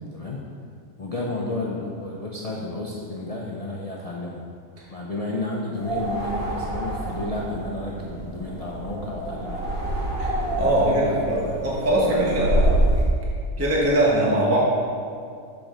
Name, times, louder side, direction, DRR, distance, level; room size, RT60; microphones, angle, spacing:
voice 1, 0.1-0.4 1.0-4.4 4.9-9.7 10.6-11.6 12.1-12.8, left 2 dB, 65° left, -3 dB, 0.3 m, -32 dB
sound 1, 5.7-13.0, right 1 dB, 50° right, 1.3 m, -27 dB
voice 2, 10.6-11.4 11.6-12.6 13.6-14.6, right 1 dB, 10° right, -5 dB, 0.9 m, -21 dB
7.1 x 5.0 x 3.7 m, 2.3 s
omnidirectional pair, 1.4 m